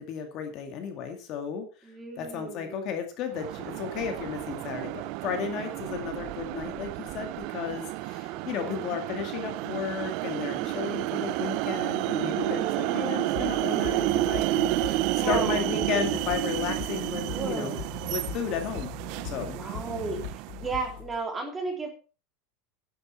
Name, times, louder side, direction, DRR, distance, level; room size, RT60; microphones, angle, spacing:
voice 1, 0.0-1.7 2.2-17.7 18.1-18.9 19.2-19.6, left 7 dB, 40° left, 5 dB, 2.3 m, -34 dB
voice 2, 1.8-2.9 5.9-6.1 8.3-8.9 10.5-11.0 12.5-13.0 15.1-15.7 17.3-17.9 19.5-21.9, right 3 dB, 15° right, 1 dB, 3.5 m, -35 dB
sound 1, 3.3-20.8, right 17 dB, 50° right, 0.5 m, -31 dB
sound 2, 13.3-21.2, left 9 dB, 60° left, 3.8 m, -40 dB
11.0 x 10.5 x 4.4 m, 0.35 s
supercardioid pair, 155°, 0 cm